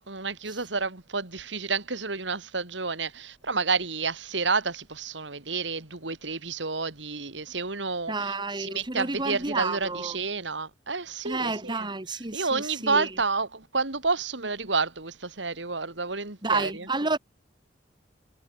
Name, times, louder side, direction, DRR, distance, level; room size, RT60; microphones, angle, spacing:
voice 1, 0.0-11.9 12.3-16.9, right 4 dB, 80° right, 3.0 m, -30 dB
voice 2, 8.1-10.2 11.2-13.1 16.4-17.2, right 3 dB, 25° right, 2.2 m, -30 dB
head